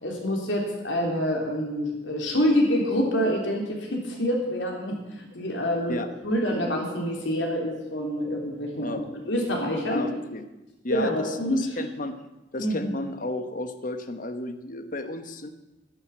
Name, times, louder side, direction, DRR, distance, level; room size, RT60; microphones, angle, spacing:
voice 1, 0.0-9.0 9.3-10.0 10.9-11.6 12.6-12.9, equal, 80° left, 0 dB, 3.5 m, -26 dB
voice 2, 9.9-10.4 10.8-12.1 12.5-15.5, left 2 dB, 45° left, 8 dB, 1.1 m, -33 dB
11.0 x 9.5 x 8.9 m, 1.1 s
head